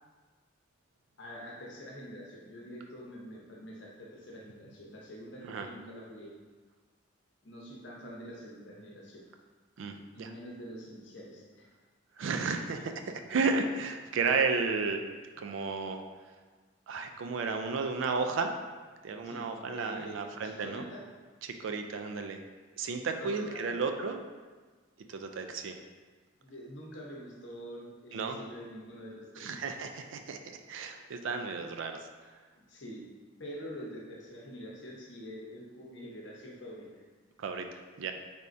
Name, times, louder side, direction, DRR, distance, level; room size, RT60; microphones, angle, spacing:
voice 1, 1.2-6.3 7.4-9.2 10.1-11.7 12.7-12.9 19.2-21.1 23.2-23.7 26.4-29.5 32.5-33.1 33.4-37.0, equal, 60° left, -3 dB, 0.8 m, -45 dB
voice 2, 9.8-10.3 12.2-15.0 15.4-16.0 16.9-18.5 19.0-20.9 21.4-22.4 22.8-24.2 25.1-25.8 28.1-28.4 29.4-30.4 30.7-32.0 37.4-37.7 38.0-38.1, right 4 dB, 70° right, 5 dB, 0.3 m, -33 dB
4.2 x 3.4 x 2.6 m, 1.4 s
head